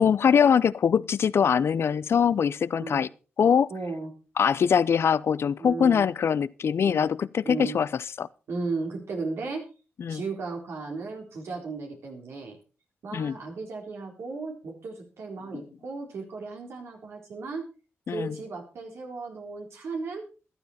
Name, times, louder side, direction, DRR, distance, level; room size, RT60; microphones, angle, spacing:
voice 1, 0.0-3.1 3.4-3.7 4.4-8.3 10.0-10.2 13.1-13.4 15.5-15.6 18.1-18.4, left 7 dB, 75° left, 0.6 m, -23 dB
voice 2, 3.7-4.1 5.6-6.1 6.8-7.1 7.4-7.8 8.5-9.6 10.1-12.6 13.0-17.6 18.1-20.2, right 4 dB, 85° right, 4.1 m, -35 dB
14.5 x 12.0 x 4.2 m
cardioid pair, 60°, 4 cm